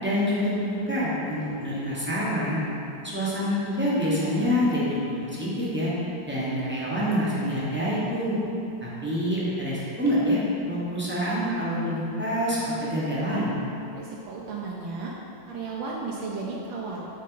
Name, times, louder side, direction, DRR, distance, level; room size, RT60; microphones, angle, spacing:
voice 1, 0.0-2.6 3.0-5.9 6.2-8.4 8.8-10.4 10.6-13.5, equal, 10° right, -9 dB, 0.5 m, -26 dB
voice 2, 13.9-15.1 15.5-17.0, right 4 dB, 75° right, -3 dB, 1.4 m, -34 dB
7.5 x 4.3 x 3.8 m, 2.9 s
omnidirectional pair, 2.3 m